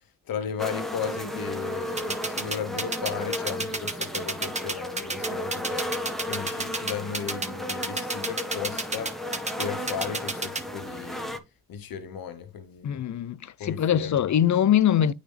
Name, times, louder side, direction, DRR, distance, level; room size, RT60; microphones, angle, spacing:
voice 1, 0.3-5.9 6.3-9.1 9.6-11.4 11.7-13.0 13.6-14.1, left 7 dB, 90° left, 1.0 m, -35 dB
sound 1, 0.6-11.4, left 1 dB, ahead, 1.3 m, -34 dB
sound 2, 2.0-10.6, right 2 dB, 20° right, 1.3 m, -29 dB
voice 2, 12.8-15.1, left 10 dB, 55° left, 0.6 m, -22 dB
8.9 x 4.1 x 3.2 m
cardioid pair, 60°, 34 cm